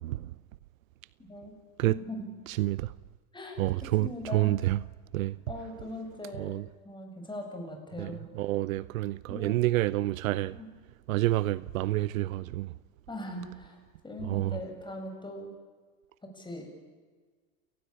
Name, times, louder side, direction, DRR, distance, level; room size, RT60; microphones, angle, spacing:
voice 1, 1.2-1.5 1.8-2.3 3.3-4.6 5.5-6.5 6.8-8.3 9.3-9.6 10.5-10.7 13.1-13.8 14.0-15.5 16.2-16.7, left 1 dB, 10° left, 7.8 m, -40 dB
voice 2, 2.6-2.9 3.6-4.8 5.1-5.3 6.4-6.6 8.0-8.1 8.4-10.6 11.1-12.7 14.3-14.6, right 16 dB, 70° right, 0.8 m, -28 dB
30.0 x 19.0 x 8.8 m
hypercardioid pair, 100°, 42 cm